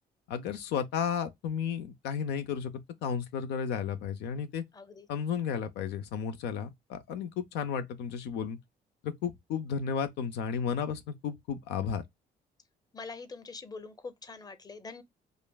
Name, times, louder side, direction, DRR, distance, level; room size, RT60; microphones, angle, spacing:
voice 1, 0.3-2.7 3.0-4.6 5.1-8.6 9.0-12.0, left 7 dB, 85° left, 0.6 m, -33 dB
voice 2, 12.9-15.0, left 4 dB, 20° left, 0.7 m, -44 dB
5.1 x 2.5 x 2.3 m
supercardioid pair, 75°, 17 cm